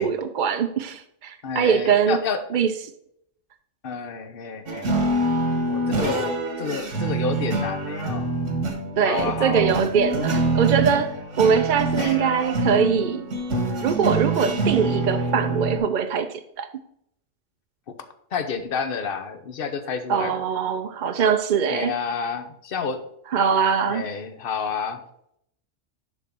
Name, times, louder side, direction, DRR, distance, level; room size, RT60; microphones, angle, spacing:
voice 1, 0.0-2.2 2.5-2.7 9.0-13.3 13.8-16.7 20.1-21.9 23.3-24.1, right 7 dB, 55° right, 0.6 m, -22 dB
voice 2, 1.4-2.4 3.8-4.9 5.7-8.3 9.0-9.8 12.0-12.2 18.3-20.4 21.7-23.0 23.9-25.0, left 5 dB, 50° left, 1.1 m, -30 dB
sound 1, 4.7-15.8, right 2 dB, 80° right, 1.7 m, -25 dB
10.5 x 3.9 x 5.9 m
omnidirectional pair, 1.2 m